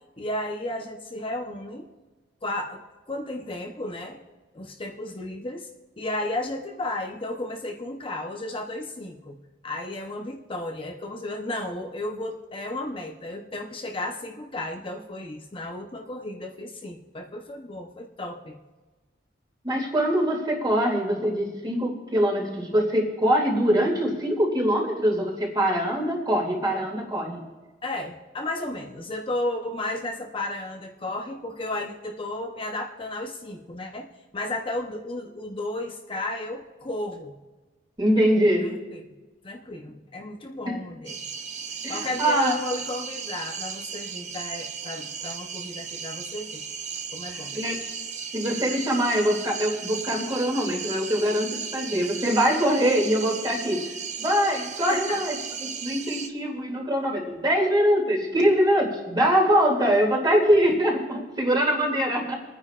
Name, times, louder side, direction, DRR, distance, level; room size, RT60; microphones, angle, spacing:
voice 1, 0.2-1.9 2.4-4.2 4.5-5.7 6.0-18.6 27.8-37.4 38.9-39.0 39.4-41.3 41.9-46.6 47.1-47.6 54.9-55.2, left 1 dB, 30° left, 1 dB, 0.8 m, -33 dB
voice 2, 19.6-27.4 38.0-38.8 40.7-40.8 41.8-42.5 47.3-47.8 48.3-53.9 54.2-55.3 55.6-62.3, equal, 25° right, -2 dB, 2.5 m, -23 dB
sound 1, 41.0-56.3, right 6 dB, 40° right, 0.8 m, -36 dB
28.5 x 9.8 x 2.5 m, 1.2 s
head